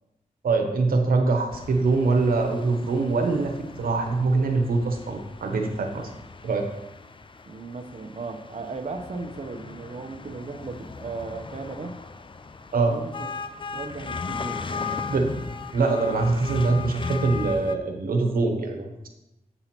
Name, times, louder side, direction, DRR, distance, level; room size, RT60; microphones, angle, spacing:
voice 1, 0.4-3.5 3.8-6.1 6.4-6.6 12.7-12.9 15.1-15.3 15.7-19.1, right 3 dB, 90° right, 3 dB, 1.0 m, -23 dB
sound 1, 1.5-17.8, left 5 dB, 35° left, 0.5 m, -37 dB
voice 2, 7.5-12.0 12.7-13.3 13.7-14.9, right 3 dB, 50° right, 4 dB, 0.8 m, -36 dB
7.9 x 5.6 x 4.4 m, 0.92 s
wide cardioid pair, 75°, 15 cm